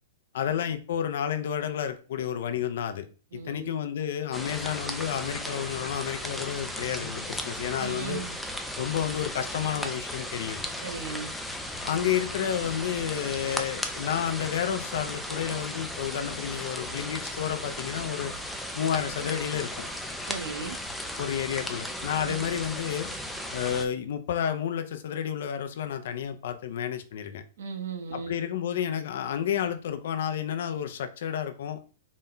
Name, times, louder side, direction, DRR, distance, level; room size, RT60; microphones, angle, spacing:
voice 1, 0.3-3.1 3.3-8.2 8.8-10.6 11.8-18.3 18.7-19.9 21.2-23.1 23.5-27.4 28.1-31.8, left 9 dB, 60° left, 0.5 m, -30 dB
voice 2, 3.3-3.7 7.8-8.4 10.8-11.3 20.3-20.8 22.2-22.4 27.6-28.3, right 5 dB, 85° right, 0.9 m, -37 dB
sound 1, 4.3-23.9, left 1 dB, ahead, 0.4 m, -36 dB
4.1 x 2.2 x 3.8 m
supercardioid pair, 165°, 0 cm